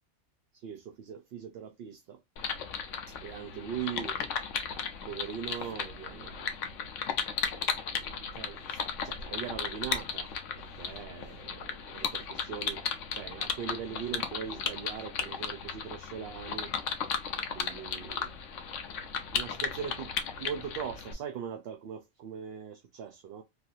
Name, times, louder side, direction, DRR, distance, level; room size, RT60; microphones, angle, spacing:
voice 1, 0.6-2.2 3.2-4.2 5.1-6.6 7.5-7.8 8.2-8.8 9.0-10.3 10.6-12.8 13.1-16.7 17.5-18.3 19.3-23.4, right 8 dB, 65° right, 0.7 m, -40 dB
sound 1, 2.4-21.1, left 6 dB, 90° left, 1.0 m, -35 dB
3.2 x 2.5 x 2.7 m
omnidirectional pair, 1.3 m